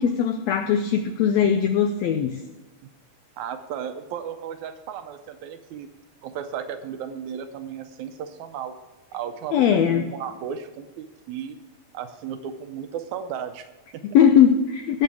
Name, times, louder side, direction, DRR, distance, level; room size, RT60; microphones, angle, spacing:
voice 1, 0.0-2.4 9.5-10.0 14.0-15.0, left 8 dB, 85° left, 8 dB, 1.5 m, -20 dB
voice 2, 3.4-5.9 6.2-8.7 9.1-11.6 11.9-14.0, right 8 dB, 75° right, 9 dB, 1.9 m, -35 dB
17.5 x 6.6 x 4.8 m, 1.1 s
omnidirectional pair, 3.6 m